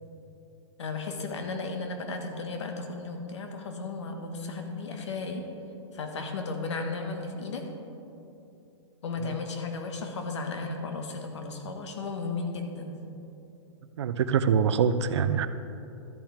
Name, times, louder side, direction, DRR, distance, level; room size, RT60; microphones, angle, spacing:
voice 1, 0.8-5.4 5.9-7.6 9.0-12.9, left 3 dB, 70° left, 4 dB, 1.4 m, -34 dB
voice 2, 14.0-15.5, right 7 dB, 65° right, 11 dB, 0.5 m, -25 dB
13.5 x 8.8 x 3.5 m, 2.9 s
hypercardioid pair, 175°, 16 cm